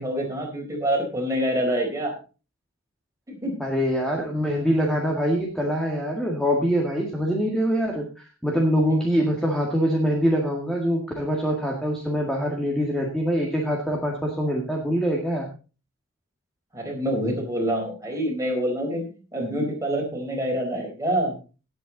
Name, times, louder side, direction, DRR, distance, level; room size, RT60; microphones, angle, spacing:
voice 1, 0.0-2.1 3.3-3.6 16.7-21.3, equal, 15° right, 0 dB, 4.2 m, -26 dB
voice 2, 3.6-15.5, equal, ahead, -1 dB, 1.9 m, -24 dB
17.5 x 8.2 x 4.0 m, 0.34 s
head